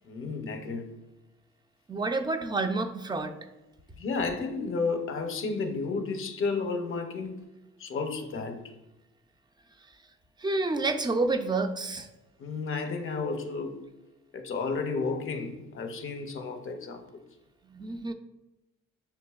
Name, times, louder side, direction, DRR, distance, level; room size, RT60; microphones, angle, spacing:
voice 1, 0.0-0.9 3.9-7.5 7.8-8.7 12.4-13.8 14.3-17.0, left 4 dB, 45° left, 6 dB, 0.6 m, -32 dB
voice 2, 1.9-3.3 10.4-12.1 17.7-18.1, right 3 dB, 15° right, 8 dB, 0.3 m, -29 dB
6.9 x 2.7 x 2.3 m, 1.0 s
cardioid pair, 90°, 30 cm